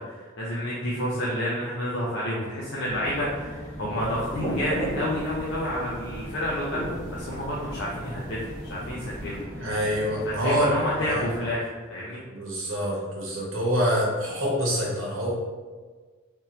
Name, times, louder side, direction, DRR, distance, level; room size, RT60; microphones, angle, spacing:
voice 1, 0.1-9.7 10.3-12.2, equal, 60° left, -6 dB, 0.6 m, -30 dB
sound 1, 2.8-11.4, equal, 85° left, 1.5 m, -40 dB
sound 2, 4.0-9.4, right 1 dB, 20° left, 1.3 m, -36 dB
voice 2, 9.6-10.7 11.0-11.2 12.3-15.3, equal, 75° right, -3 dB, 1.0 m, -26 dB
3.4 x 2.9 x 2.8 m, 1.5 s
head